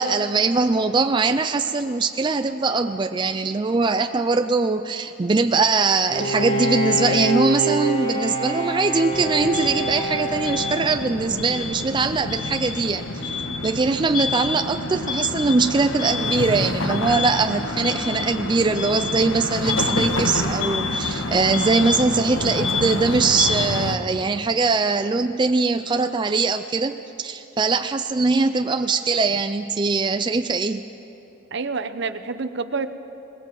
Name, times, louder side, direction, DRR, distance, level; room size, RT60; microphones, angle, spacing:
voice 1, 0.0-13.4 13.6-30.8, right 4 dB, 25° right, 7 dB, 0.4 m, -22 dB
Bowed string instrument, 6.1-11.7, right 1 dB, 30° left, 2.7 m, -26 dB
sound 1, 9.1-24.0, left 3 dB, 75° left, 1.4 m, -27 dB
voice 2, 31.5-32.9, right 4 dB, 60° right, 10 dB, 0.9 m, -28 dB
21.5 x 20.0 x 7.6 m, 3.0 s
head